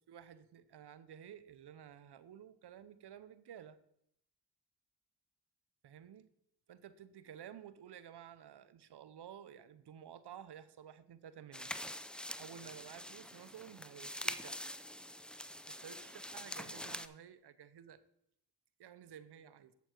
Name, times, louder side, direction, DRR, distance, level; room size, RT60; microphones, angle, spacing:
voice 1, 0.1-3.8 5.8-6.3 6.7-11.7 12.4-14.6 15.7-18.0 18.8-19.7, right 9 dB, 75° right, 14 dB, 0.7 m, -53 dB
sound 1, 11.5-17.1, left 1 dB, ahead, 0.4 m, -45 dB
8.0 x 7.0 x 4.4 m, 0.74 s
cardioid pair, 55°, 41 cm